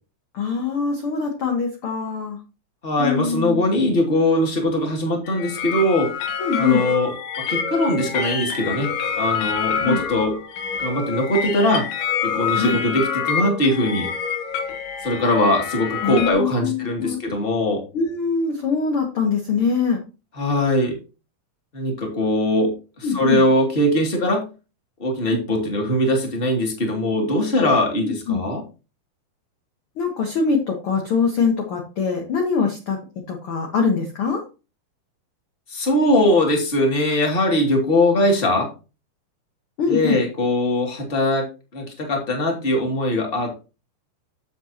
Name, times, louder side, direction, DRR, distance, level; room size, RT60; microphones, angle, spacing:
voice 1, 0.3-2.4 3.0-3.7 6.4-6.8 9.8-10.0 12.5-12.8 16.0-17.2 17.9-20.0 23.0-23.4 28.0-28.4 30.0-33.0 33.3-34.4 39.8-40.2, left 5 dB, 55° left, 2 dB, 1.7 m, -23 dB
voice 2, 2.8-6.1 6.6-10.4 10.8-11.9 12.2-14.1 15.0-17.8 20.4-21.0 21.7-24.5 25.0-28.6 35.7-38.7 39.9-43.7, left 1 dB, 20° left, 2 dB, 2.1 m, -21 dB
sound 1, 5.3-16.3, left 7 dB, 85° left, 3.3 m, -27 dB
9.3 x 8.0 x 2.9 m, 0.31 s
omnidirectional pair, 4.4 m